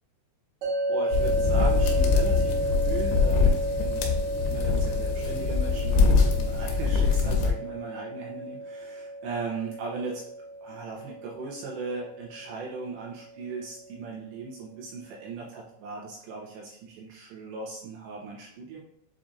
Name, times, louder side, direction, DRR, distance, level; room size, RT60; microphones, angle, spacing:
sound 1, 0.6-13.7, right 1 dB, 65° right, 1.7 m, -33 dB
voice 1, 0.9-4.1 4.4-10.3 10.6-18.8, right 4 dB, 85° right, -4 dB, 2.5 m, -38 dB
sound 2, 1.1-7.5, left 4 dB, 85° left, 2.6 m, -23 dB
7.3 x 2.5 x 2.6 m, 0.75 s
omnidirectional pair, 5.5 m